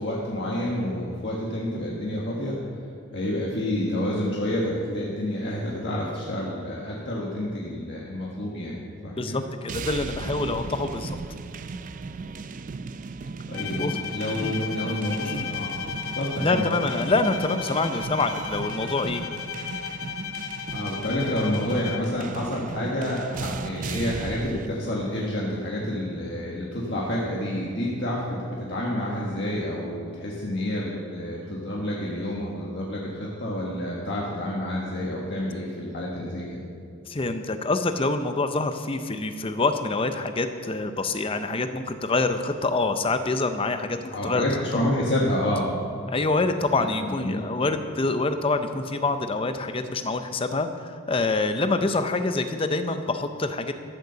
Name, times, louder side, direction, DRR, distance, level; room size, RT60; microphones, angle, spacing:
voice 1, 0.0-2.5 3.1-9.4 13.5-15.7 16.1-16.7 20.7-36.6 44.1-45.7 46.7-47.4, left 1 dB, 55° left, -4 dB, 1.5 m, -29 dB
voice 2, 9.2-11.2 13.8-14.0 14.4-14.6 15.2-15.6 16.4-19.2 37.1-44.5 46.1-53.7, left 3 dB, 25° left, 8 dB, 0.6 m, -26 dB
sound 1, 9.7-24.7, right 4 dB, 40° right, 0.3 m, -36 dB
Bowed string instrument, 13.5-22.3, left 8 dB, 80° left, 0.6 m, -35 dB
13.0 x 6.7 x 6.9 m, 2.4 s
head